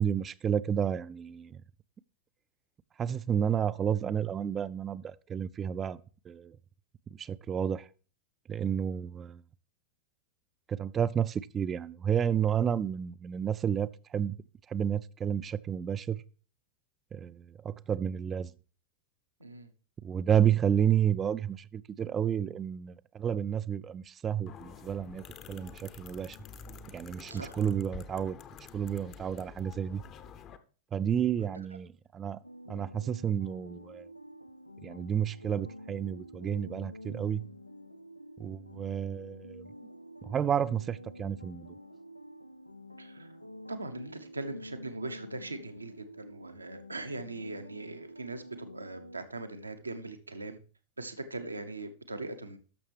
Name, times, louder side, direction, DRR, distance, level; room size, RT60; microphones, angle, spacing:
voice 1, 0.0-1.6 3.0-6.0 6.3-6.6 7.1-7.9 8.5-9.4 10.7-14.4 14.7-16.2 17.1-18.5 20.0-26.4 26.9-28.4 28.7-30.0 30.9-32.4 32.7-34.1 34.8-37.4 38.4-39.7 40.2-41.7, right 8 dB, 25° right, 0.4 m, -31 dB
voice 2, 19.4-19.7 27.3-27.5 31.4-31.6 43.0-43.3 43.7-50.6 51.0-52.6, right 2 dB, 80° right, 0.8 m, -40 dB
sound 1, 24.5-30.6, left 7 dB, 35° left, 0.7 m, -48 dB
sound 2, 32.4-49.3, left 1 dB, 90° left, 0.4 m, -48 dB
12.0 x 6.5 x 3.4 m
figure-of-eight pair, 90°, 0 cm